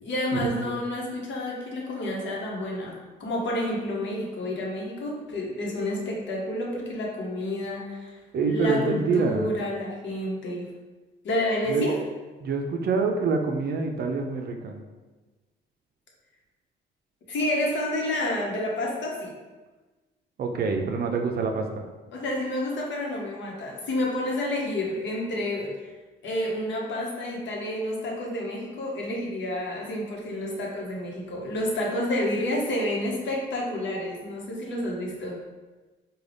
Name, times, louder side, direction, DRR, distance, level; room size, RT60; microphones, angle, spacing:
voice 1, 0.0-8.1 8.4-10.7 11.2-12.0 17.3-19.3 22.1-25.7 26.2-35.4, left 1 dB, 65° left, -2 dB, 0.9 m, -29 dB
voice 2, 8.3-9.6 11.7-11.9 12.4-14.8 20.4-21.8, right 4 dB, 50° right, 3 dB, 0.5 m, -26 dB
3.7 x 2.3 x 3.3 m, 1.2 s
cardioid pair, 90°, 20 cm